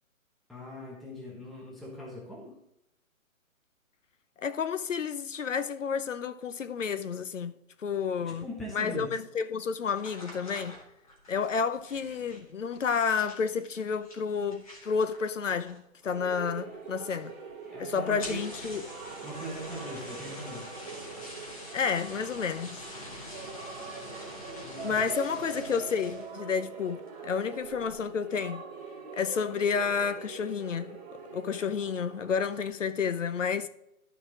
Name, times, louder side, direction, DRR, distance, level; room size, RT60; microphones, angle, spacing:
voice 1, 0.5-2.5 8.2-9.1 17.7-18.5 19.2-20.7 24.6-25.0, equal, ahead, 0.5 m, -41 dB
voice 2, 4.4-7.6 7.8-10.8 11.3-17.3 17.8-18.9 21.7-22.8 24.8-28.6 29.1-31.0 31.3-33.7, left 6 dB, 65° left, 0.7 m, -30 dB
sound 1, 9.9-16.0 16.3-16.8 17.1-17.2 17.5-17.6 18.1-26.4 26.8-27.2 27.6-28.0, left 1 dB, 25° left, 1.5 m, -46 dB
sound 2, 16.0-32.7, right 5 dB, 35° right, 2.1 m, -43 dB
12.0 x 4.1 x 4.9 m
hypercardioid pair, 180°, 41 cm